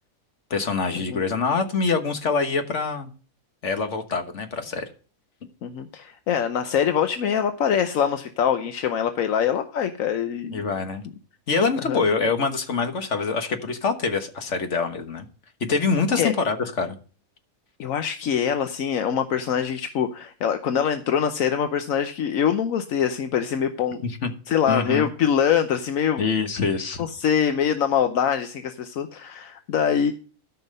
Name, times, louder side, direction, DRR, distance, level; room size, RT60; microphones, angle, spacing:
voice 1, 0.5-3.1 3.6-4.9 10.5-11.0 11.5-15.3 15.6-17.0 24.0-24.3 24.7-25.1 26.2-27.0, left 4 dB, 60° left, 7 dB, 1.6 m, -25 dB
voice 2, 5.6-10.6 11.9-12.0 16.2-16.3 17.8-24.0 24.5-26.2 27.0-30.1, left 8 dB, 80° left, 8 dB, 1.2 m, -24 dB
13.5 x 5.8 x 5.4 m, 0.38 s
omnidirectional pair, 1.4 m